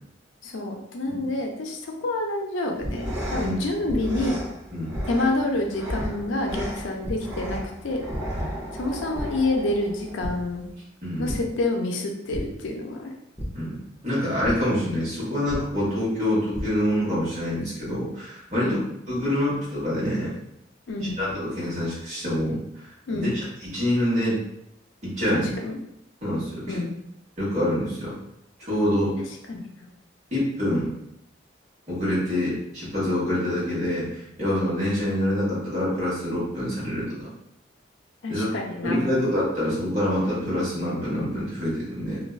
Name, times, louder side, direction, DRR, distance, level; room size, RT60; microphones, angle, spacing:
voice 1, 0.4-4.4 5.1-8.1 8.7-10.7 11.2-13.1 18.5-18.9 20.9-21.2 23.1-23.4 25.3-25.8 26.7-26.9 29.5-29.6 38.2-39.3, left 2 dB, 80° left, 2 dB, 0.4 m, -28 dB
sound 1, 2.7-10.7, equal, 80° right, 1.0 m, -35 dB
sound 2, 2.8-2.9 3.9-4.0 4.9-5.0 6.0-6.1 7.0-7.1 8.1-8.2 8.6-8.8 9.1-9.2 10.2-10.3 11.2-11.4 12.3-12.4 13.4-13.5 14.4-14.5 15.5-15.6 16.3-16.6, equal, 10° right, 0.5 m, -31 dB
voice 2, 11.0-11.4 13.5-13.8 14.0-18.8 19.1-20.3 21.0-22.8 23.1-24.4 25.0-25.5 26.2-26.8 27.4-28.1 28.6-29.1 30.3-30.9 31.9-37.1 38.3-38.5 38.8-42.2, left 1 dB, 40° right, -9 dB, 1.3 m, -26 dB
2.5 x 2.2 x 2.3 m, 0.78 s
head